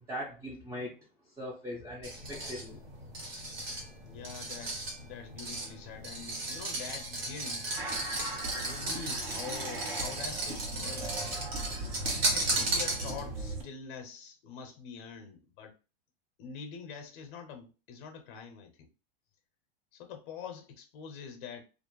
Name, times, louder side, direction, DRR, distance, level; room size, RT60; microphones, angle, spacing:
voice 1, 0.1-0.9 1.4-2.8, equal, 10° right, 0.5 m, -40 dB
sound 1, 2.0-13.4, right 2 dB, 85° right, 1.2 m, -35 dB
voice 2, 4.0-7.6 8.4-11.3 12.3-15.7 16.4-18.9 19.9-21.6, left 6 dB, 55° left, 0.7 m, -45 dB
sound 2, 7.8-13.6, right 2 dB, 50° right, 1.0 m, -39 dB
2.4 x 2.0 x 3.0 m
hypercardioid pair, 120°, 30 cm